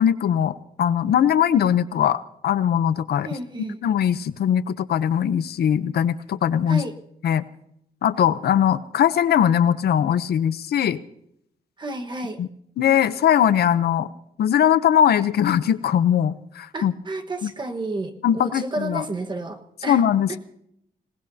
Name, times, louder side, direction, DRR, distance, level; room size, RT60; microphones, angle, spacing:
voice 1, 0.0-3.3 3.8-6.8 7.2-7.4 8.0-11.0 12.4-12.5 12.8-14.1 14.4-16.9 17.4-17.5 18.2-19.0 19.9-20.4, left 9 dB, 85° left, 14 dB, 0.7 m, -20 dB
voice 2, 3.2-3.8 6.7-6.9 11.8-12.4 16.7-20.0 20.3-20.4, right 2 dB, 30° right, 5 dB, 1.4 m, -31 dB
26.5 x 18.5 x 2.8 m, 0.75 s
wide cardioid pair, 150°, 16 cm